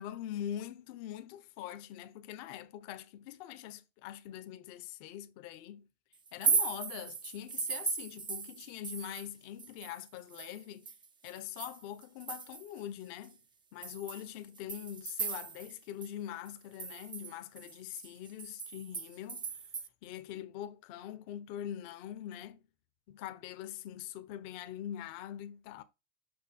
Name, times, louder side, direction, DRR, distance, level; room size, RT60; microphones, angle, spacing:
voice 1, 0.0-5.9 6.3-10.9 11.2-13.4 13.7-19.6 20.0-22.6 23.1-25.8, left 11 dB, 50° left, 1.1 m, -43 dB
sound 1, 6.3-9.3 9.6-12.8 13.2-13.3 13.8-16.1 16.5-19.9, right 5 dB, 10° right, 0.6 m, -37 dB
6.6 x 5.7 x 3.8 m
hypercardioid pair, 95°, 37 cm